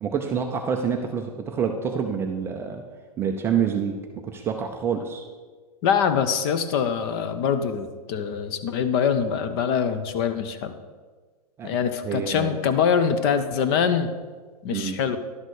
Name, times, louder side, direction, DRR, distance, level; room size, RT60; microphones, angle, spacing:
voice 1, 0.0-2.8 3.2-5.2 11.6-11.8 12.0-12.9 14.7-15.0, right 7 dB, 10° right, 3 dB, 0.3 m, -27 dB
voice 2, 5.8-10.7 11.6-14.1 14.6-15.2, left 7 dB, 40° left, 10 dB, 0.7 m, -24 dB
11.0 x 4.0 x 6.4 m, 1.4 s
hypercardioid pair, 145°, 20 cm